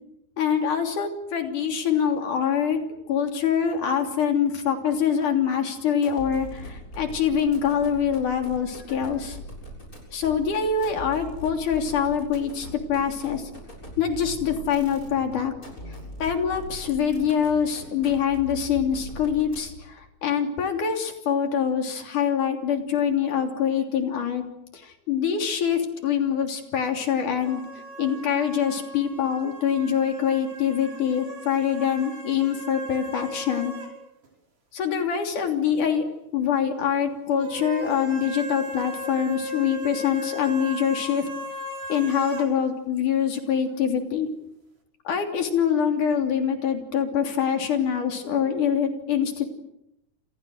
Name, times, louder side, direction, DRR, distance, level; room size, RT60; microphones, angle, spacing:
voice 1, 0.4-2.8 3.1-9.4 10.1-13.5 14.0-15.5 16.2-24.4 24.7-27.6 28.0-33.7 34.7-36.0 36.3-41.3 41.9-44.3 45.0-49.5, left 8 dB, 85° left, 4 dB, 4.7 m, -24 dB
sound 1, 6.0-19.9, equal, 25° left, 7.7 m, -41 dB
sound 2, 27.4-34.0 34.2-34.3 37.4-42.5, left 2 dB, 85° right, 7.0 m, -36 dB
29.0 x 28.5 x 6.5 m, 0.84 s
omnidirectional pair, 3.5 m